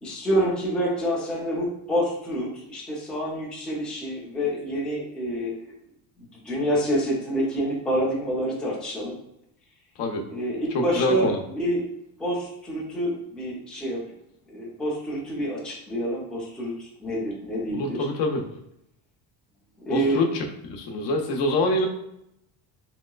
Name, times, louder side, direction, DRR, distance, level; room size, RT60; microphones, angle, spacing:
voice 1, 0.0-5.6 6.2-9.2 10.3-11.9 12.2-14.0 14.5-18.1 19.9-20.2, equal, ahead, -5 dB, 0.4 m, -27 dB
voice 2, 10.7-11.4 17.7-18.5 19.9-20.4 20.7-21.9, left 2 dB, 75° left, 2 dB, 0.7 m, -25 dB
3.1 x 2.9 x 2.3 m, 0.80 s
cardioid pair, 155°, 44 cm